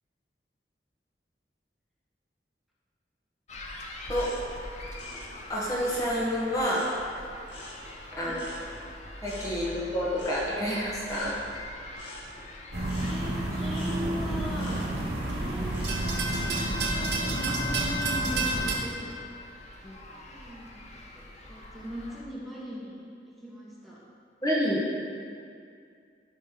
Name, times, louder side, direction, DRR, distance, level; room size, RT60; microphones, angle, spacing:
sound 1, 3.5-22.2, left 1 dB, 40° left, 0.8 m, -44 dB
sound 2, 4.1-7.1 7.5-16.3 16.7-17.2, left 1 dB, 75° left, 2.0 m, -47 dB
voice 1, 5.5-6.8 8.1-8.4 9.2-11.3 19.8-19.9 24.4-24.8, equal, 20° left, -6 dB, 1.3 m, -28 dB
sound 3, 12.7-18.7, right 2 dB, 65° right, 1.4 m, -29 dB
voice 2, 12.8-14.8 15.2-19.2 20.1-20.9 21.1-24.0, equal, ahead, -8 dB, 1.4 m, -40 dB
14.0 x 5.2 x 3.8 m, 2.3 s
head